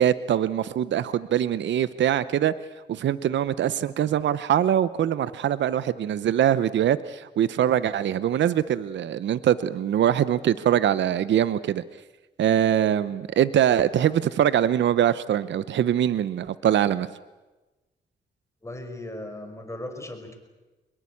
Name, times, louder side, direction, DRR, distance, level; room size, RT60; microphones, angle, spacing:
voice 1, 0.0-2.5 2.9-11.8 12.4-17.1, right 10 dB, 80° right, 16 dB, 0.8 m, -23 dB
voice 2, 18.6-20.3, left 1 dB, 15° left, 5 dB, 5.2 m, -37 dB
24.0 x 22.0 x 8.6 m, 1.1 s
cardioid pair, 85°, 19 cm